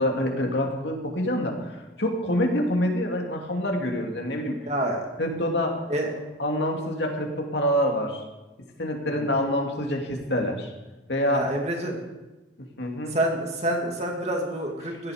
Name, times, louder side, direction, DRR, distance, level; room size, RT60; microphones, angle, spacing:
voice 1, 0.0-4.6 5.2-5.7 6.4-8.2 8.8-10.7 11.1-11.5 12.8-13.1, equal, 65° left, 1 dB, 2.6 m, -26 dB
voice 2, 4.6-5.0 5.9-6.1 9.1-9.3 11.3-12.0 13.1-15.1, right 1 dB, 35° right, 1 dB, 2.6 m, -28 dB
16.5 x 13.0 x 5.1 m, 1.1 s
head